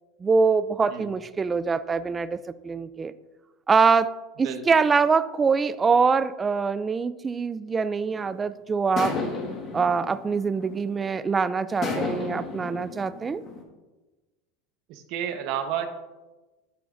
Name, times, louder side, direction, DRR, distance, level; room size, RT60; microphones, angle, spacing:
voice 1, 0.2-2.4 2.6-3.1 3.7-4.1 4.4-9.2 9.7-13.4, right 5 dB, 15° right, 14 dB, 0.3 m, -24 dB
voice 2, 4.4-4.8 14.9-15.9, right 9 dB, 55° right, 7 dB, 1.0 m, -31 dB
sound 1, 8.1-8.4 9.0-11.1 11.8-13.6, left 4 dB, 30° left, 1.5 m, -33 dB
11.5 x 8.3 x 2.6 m, 1.2 s
supercardioid pair, 155°, 0 cm